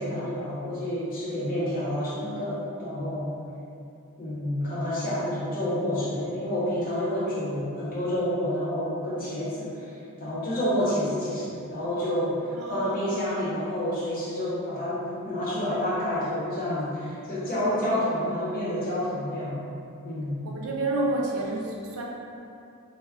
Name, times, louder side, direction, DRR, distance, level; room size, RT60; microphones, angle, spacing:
voice 1, 0.0-3.3 4.2-19.6 20.0-20.4, left 1 dB, 40° left, -8 dB, 0.7 m, -29 dB
voice 2, 12.5-13.1 17.6-18.0 20.4-22.0, right 2 dB, 70° right, -2 dB, 0.4 m, -30 dB
2.3 x 2.1 x 3.3 m, 2.5 s
head